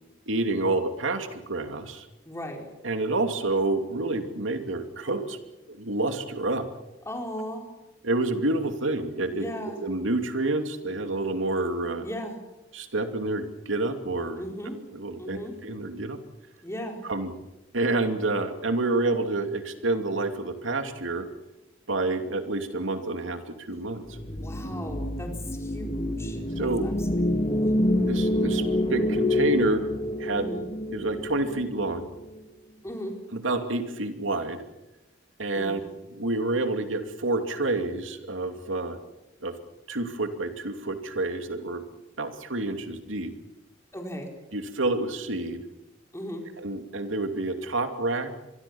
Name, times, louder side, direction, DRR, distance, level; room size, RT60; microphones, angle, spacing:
voice 1, 0.3-2.0 2.8-5.4 5.7-6.7 8.0-9.5 9.8-12.0 12.7-14.4 14.9-16.2 17.0-17.3 17.7-21.3 21.9-24.1 26.6-26.8 28.1-28.6 28.9-29.9 30.2-30.5 30.9-32.1 33.3-34.6 35.4-35.8 36.1-39.0 39.4-39.5 39.9-41.8 42.2-43.3 44.5-45.6 46.6-48.3, right 2 dB, 90° right, 6 dB, 2.7 m, -28 dB
voice 2, 2.3-2.7 7.1-7.6 9.3-9.8 12.0-12.4 14.4-14.8 15.2-15.5 16.6-17.0 24.3-27.2 30.3-30.7 32.8-33.1 35.5-35.8 43.9-44.3 46.1-46.4, equal, 15° left, 2 dB, 4.1 m, -37 dB
sound 1, 24.1-32.4, left 1 dB, 30° left, 2.0 m, -27 dB
26.5 x 22.5 x 7.2 m, 0.98 s
head